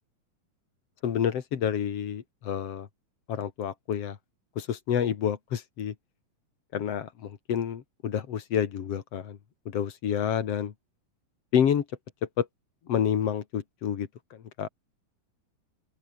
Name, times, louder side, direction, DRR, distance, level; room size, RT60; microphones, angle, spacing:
voice 1, 1.0-2.9 3.3-4.2 4.6-5.9 6.7-9.4 9.7-10.7 11.5-11.8 12.4-12.5 12.9-14.1 14.6-14.7, left 8 dB, 50° left, 2.6 m, -28 dB
open air
omnidirectional pair, 4.0 m